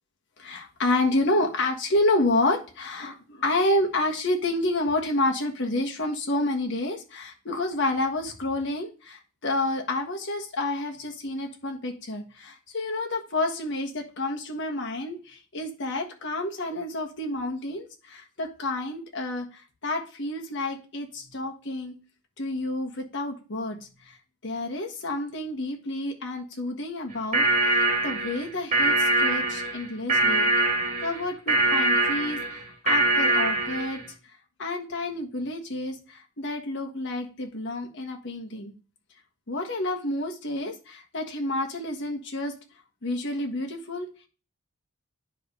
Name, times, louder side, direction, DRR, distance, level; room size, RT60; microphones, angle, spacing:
voice 1, 0.4-19.5 19.8-21.9 22.4-23.8 24.4-30.5 31.0-34.0 34.6-38.7 39.5-42.5 43.0-44.1, left 2 dB, 55° left, 3 dB, 1.4 m, -29 dB
sound 1, 27.1-34.1, right 2 dB, 30° right, 1.6 m, -23 dB
9.8 x 3.4 x 5.5 m, 0.34 s
head